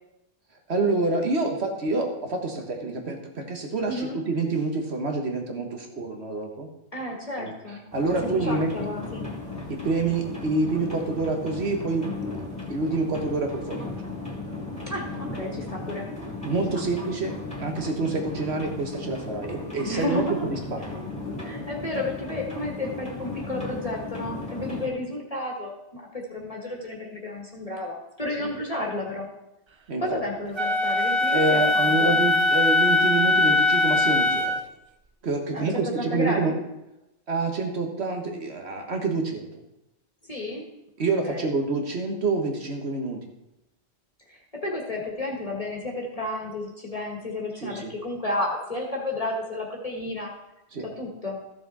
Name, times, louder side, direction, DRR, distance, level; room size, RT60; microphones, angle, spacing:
voice 1, 0.7-6.7 7.4-8.7 9.7-12.1 12.7-14.1 16.4-20.8 28.4-28.5 29.9-30.2 31.3-34.6 35.2-36.5 37.3-39.5 41.0-43.2 47.6-47.9 50.7-50.9, right 3 dB, 70° right, 3 dB, 1.8 m, -27 dB
voice 2, 3.8-4.2 6.9-7.8 8.2-9.3 14.9-16.1 16.7-16.8 19.8-20.4 21.4-29.3 30.0-32.1 35.5-36.6 40.3-40.7 41.2-41.5 44.3-50.3 51.0-51.4, left 1 dB, 35° left, -1 dB, 1.7 m, -32 dB
sound 1, 7.9-24.9, left 3 dB, 5° left, 2.6 m, -36 dB
Wind instrument woodwind instrument, 30.6-34.6, left 3 dB, 35° right, 0.5 m, -21 dB
14.0 x 7.0 x 4.2 m, 0.88 s
omnidirectional pair, 1.1 m